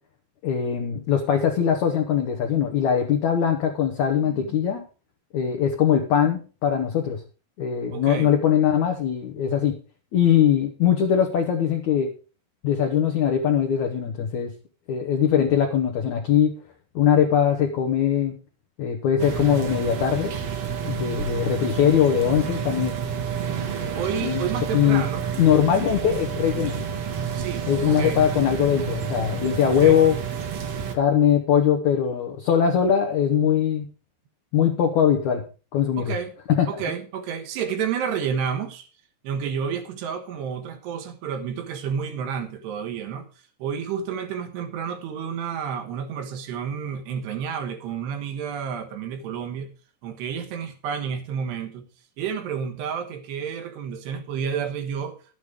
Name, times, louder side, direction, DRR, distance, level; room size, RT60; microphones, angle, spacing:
voice 1, 0.4-4.8 5.3-7.2 7.6-9.8 10.1-12.1 12.6-14.5 14.9-16.5 16.9-18.3 18.8-20.3 20.8-22.9 24.2-25.0 25.4-26.8 27.7-30.1 30.9-33.8 34.5-35.4 35.7-36.1 36.5-36.8, left 9 dB, 70° left, 1.8 m, -21 dB
voice 2, 4.2-4.6 7.9-8.3 23.9-25.3 25.8-25.9 27.3-28.2 29.7-30.0 36.0-36.3 36.7-38.9 39.2-43.3 43.6-49.7 50.0-51.9 52.2-55.2, right 7 dB, 75° right, 3.5 m, -30 dB
sound 1, 19.2-31.0, right 7 dB, 60° right, 1.7 m, -29 dB
11.5 x 9.3 x 5.0 m
omnidirectional pair, 5.0 m